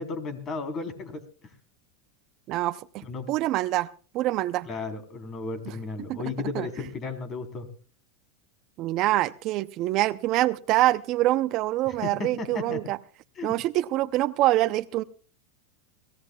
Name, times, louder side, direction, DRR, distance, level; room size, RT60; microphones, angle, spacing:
voice 1, 0.0-1.5 3.0-3.3 4.7-7.7 11.9-12.8 13.4-13.5, left 4 dB, 35° left, 8 dB, 3.6 m, -34 dB
voice 2, 2.5-3.9 4.1-4.7 6.1-6.2 6.5-6.7 8.8-13.0 13.4-15.0, right 16 dB, 50° right, 15 dB, 0.6 m, -25 dB
24.5 x 16.5 x 2.3 m, 0.39 s
hypercardioid pair, 105°, 0 cm